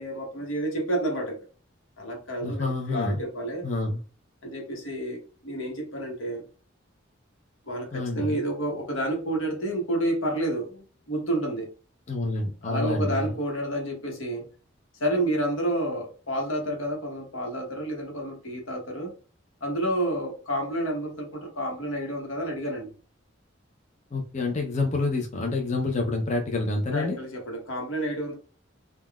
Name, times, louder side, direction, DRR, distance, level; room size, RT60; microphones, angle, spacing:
voice 1, 0.0-1.4 2.0-3.6 4.4-6.4 7.6-11.7 12.6-14.5 15.0-19.1 19.6-22.9 26.9-28.3, right 1 dB, 85° left, 1.0 m, -30 dB
voice 2, 2.4-3.2 3.6-4.0 7.9-8.4 12.1-13.3 24.1-27.2, left 2 dB, 35° left, 0.5 m, -28 dB
3.6 x 2.3 x 2.2 m
head